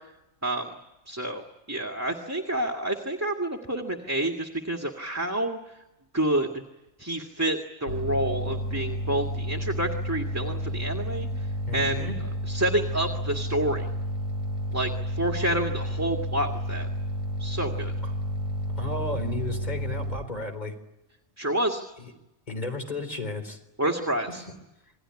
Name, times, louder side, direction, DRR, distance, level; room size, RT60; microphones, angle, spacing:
voice 1, 0.4-0.7 1.1-1.4 1.7-5.6 6.1-6.5 7.0-11.5 11.7-12.1 12.5-13.9 14.7-16.9 17.4-17.9 21.4-21.8 23.8-24.4, right 1 dB, 10° right, 2 dB, 1.9 m, -28 dB
sound 1, 7.9-20.2, equal, 80° left, 4.2 m, -31 dB
voice 2, 11.7-12.2 18.0-18.1 18.8-20.7 22.0-22.1 22.5-23.6, left 2 dB, 35° left, 6 dB, 4.1 m, -33 dB
28.0 x 21.5 x 9.8 m, 0.94 s
omnidirectional pair, 1.3 m